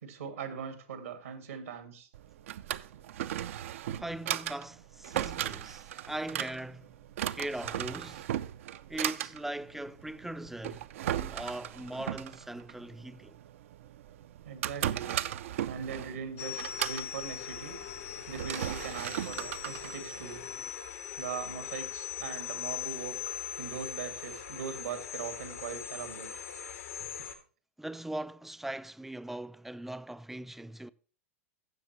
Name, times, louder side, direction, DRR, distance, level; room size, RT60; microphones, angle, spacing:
voice 1, 0.0-2.1 3.9-4.0 14.4-15.2 15.7-17.8 18.3-20.4 21.2-26.3, right 6 dB, 90° right, 2.0 m, -41 dB
Drawer open or close, 2.1-20.7, right 12 dB, 70° right, 0.5 m, -37 dB
voice 2, 3.9-7.0 7.3-8.3 8.9-13.4 27.8-30.9, right 1 dB, 5° right, 0.4 m, -40 dB
sound 1, 16.4-27.4, left 9 dB, 85° left, 1.8 m, -40 dB
15.5 x 7.2 x 3.0 m
hypercardioid pair, 110°, 7 cm